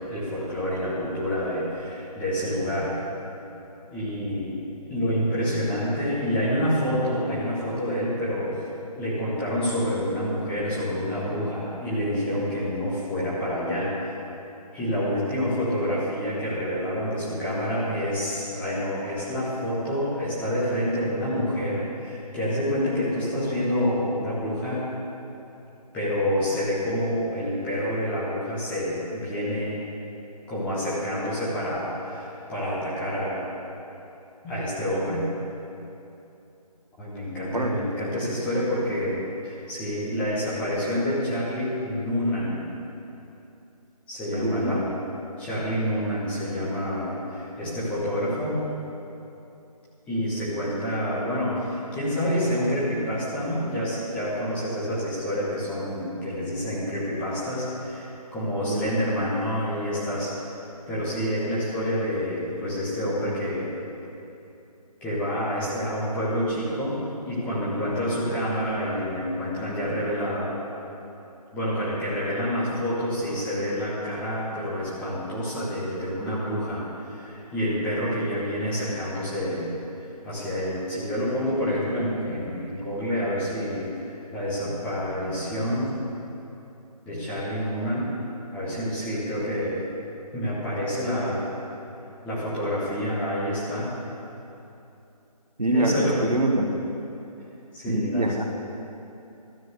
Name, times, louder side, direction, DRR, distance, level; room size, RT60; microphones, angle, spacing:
voice 1, 0.0-2.9 3.9-4.6 4.9-8.7 8.9-13.9 14.7-24.9 25.9-29.8 30.5-33.5 34.4-35.3 37.0-42.7 44.1-44.9 45.4-48.6 50.1-60.3 60.9-63.6 65.0-67.0 67.3-70.5 71.5-79.7 80.2-85.9 87.0-88.1 88.5-89.8 90.3-91.4 92.2-93.9 95.7-96.2 97.7-98.4, equal, 5° left, -9 dB, 1.2 m, -28 dB
voice 2, 44.3-44.8 52.6-52.7 58.7-58.9 95.6-96.7 97.9-98.4, right 1 dB, 80° right, 3 dB, 1.2 m, -25 dB
12.5 x 4.6 x 7.8 m, 2.8 s
figure-of-eight pair, 155°, 20 cm